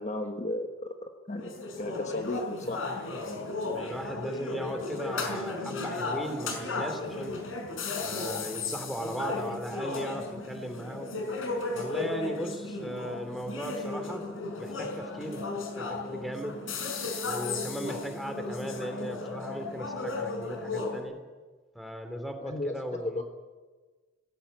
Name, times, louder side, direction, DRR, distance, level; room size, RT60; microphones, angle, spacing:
voice 1, 0.0-1.5 1.8-3.1 22.4-23.2, left 1 dB, 35° left, 4 dB, 1.4 m, -35 dB
sound 1, 1.3-21.0, left 3 dB, 85° left, 5.7 m, -35 dB
voice 2, 3.7-7.4 8.0-11.1 11.7-14.3 14.6-15.4 15.7-16.6 17.2-21.2 21.7-23.2, equal, ahead, 5 dB, 2.7 m, -37 dB
20.0 x 17.0 x 8.7 m, 1.3 s
head